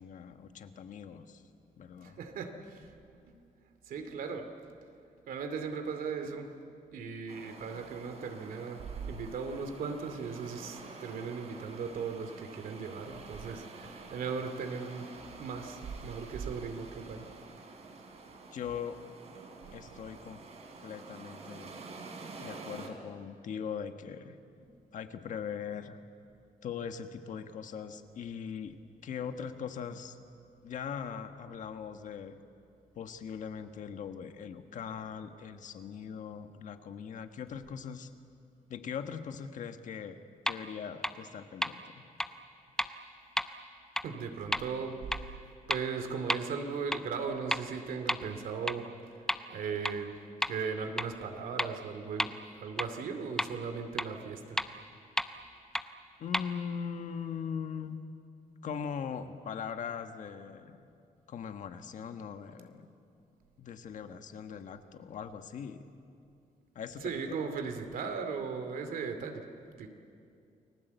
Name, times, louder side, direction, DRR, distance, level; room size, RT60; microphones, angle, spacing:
voice 1, 0.0-1.4 1.8-2.2 18.5-19.0 19.7-20.4 20.8-21.8 22.4-24.4 24.9-26.0 26.6-30.2 30.6-32.4 32.9-38.1 38.7-40.2 40.5-42.0 56.2-58.0 58.6-60.8 61.3-62.9 63.6-65.8 66.7-67.2, left 7 dB, 60° left, 7 dB, 1.5 m, -40 dB
voice 2, 2.0-2.9 3.3-3.4 3.9-4.4 5.3-6.5 6.9-17.2 24.6-24.7 44.0-45.4 45.7-48.9 49.5-50.1 50.5-54.6 67.0-69.5 69.8-69.9, right 5 dB, 75° right, 6 dB, 2.5 m, -37 dB
sound 1, 7.3-22.9, right 3 dB, 45° right, 3.5 m, -49 dB
sound 2, 40.5-40.6 41.0-41.1 41.6-41.7 42.2-42.3 42.8-42.9 43.4-43.5 44.0-44.1 44.5-44.6 45.1-45.2 45.7-45.8 46.3-46.4 46.9-47.0 47.5-47.6 48.1-48.2 48.7-48.8 49.3-49.4 49.9-50.0 50.4-50.5 51.0-51.1 51.6-51.7 52.2-52.3 52.8-52.9 53.4-53.5 54.0-54.1 54.6-54.7 55.2-55.3 55.7-55.8 56.3-56.4, left 1 dB, 5° left, 0.7 m, -30 dB
29.5 x 21.0 x 8.1 m, 2.5 s
wide cardioid pair, 170°, 15 cm